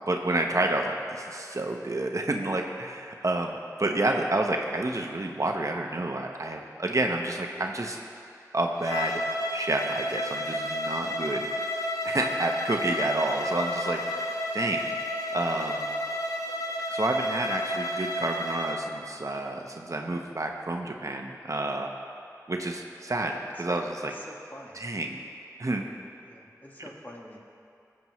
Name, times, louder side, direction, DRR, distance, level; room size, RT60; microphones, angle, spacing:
voice 1, 0.1-8.0 8.5-9.2 9.5-11.4 12.0-14.9 15.3-15.8 16.9-21.9 22.5-24.1 24.8-25.2 25.6-25.9, right 2 dB, 55° right, 2 dB, 0.9 m, -29 dB
Bowed string instrument, 8.8-18.8, left 1 dB, 60° left, 1.1 m, -31 dB
voice 2, 23.5-24.8 26.2-27.4, equal, 30° left, -2 dB, 1.7 m, -46 dB
20.5 x 7.7 x 3.1 m, 2.6 s
wide cardioid pair, 55°, 6 cm